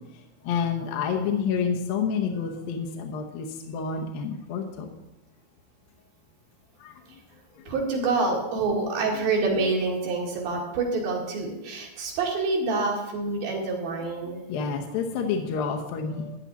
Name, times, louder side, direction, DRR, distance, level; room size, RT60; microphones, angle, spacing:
voice 1, 0.5-4.9 6.8-6.9 14.5-16.4, left 6 dB, 75° left, 2 dB, 2.6 m, -28 dB
voice 2, 7.7-14.4, right 3 dB, 70° right, -2 dB, 3.8 m, -27 dB
14.5 x 9.7 x 4.1 m, 1.0 s
omnidirectional pair, 4.4 m